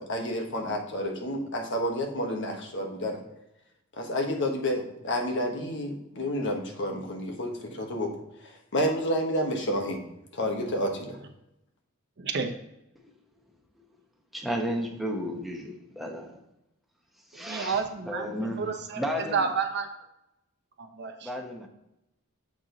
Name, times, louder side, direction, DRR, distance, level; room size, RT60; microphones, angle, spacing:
voice 1, 0.0-3.2 4.0-8.1 8.4-10.0 10.3-11.2, equal, 60° left, 2 dB, 1.3 m, -30 dB
voice 2, 12.2-12.5 17.5-18.3 18.6-19.0 19.3-19.9 20.8-21.3, right 5 dB, 55° right, 5 dB, 0.8 m, -30 dB
voice 3, 14.3-16.4 17.4-19.6 21.2-21.7, equal, ahead, 1 dB, 1.0 m, -33 dB
7.5 x 4.5 x 3.9 m, 0.88 s
head